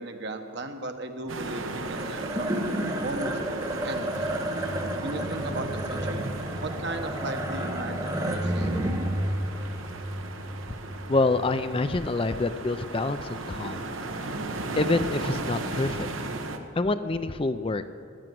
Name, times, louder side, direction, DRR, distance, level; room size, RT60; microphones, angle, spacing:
voice 1, 0.0-2.6 3.0-3.4 3.8-4.4 5.0-6.3 6.6-8.7, right 2 dB, 55° right, 6 dB, 1.2 m, -36 dB
sound 1, 1.3-16.6, right 2 dB, 80° right, 1.2 m, -36 dB
sound 2, 1.8-12.3, right 1 dB, 20° right, 1.2 m, -31 dB
voice 2, 11.1-13.8 14.8-16.1 16.8-17.8, left 3 dB, 25° left, 11 dB, 0.4 m, -26 dB
15.0 x 10.5 x 7.7 m, 2.5 s
head